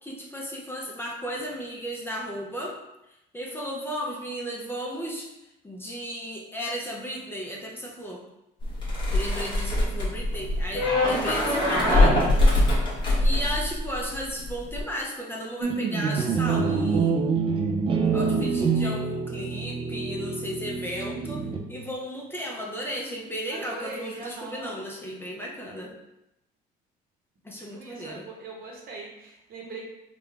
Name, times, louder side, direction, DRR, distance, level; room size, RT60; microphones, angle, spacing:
voice 1, 0.0-2.8 3.3-5.3 5.6-8.2 9.1-12.2 13.2-17.2 18.1-25.9 27.4-28.3, equal, 15° left, -2 dB, 0.6 m, -35 dB
sound 1, 8.6-14.2 14.4-14.8, left 1 dB, 30° left, 1.2 m, -22 dB
sound 2, 15.6-21.9, right 5 dB, 30° right, 0.4 m, -26 dB
voice 2, 23.5-24.7 27.7-29.9, right 2 dB, 60° right, -1 dB, 1.0 m, -40 dB
3.7 x 2.3 x 3.3 m, 0.87 s
cardioid pair, 110°, 17 cm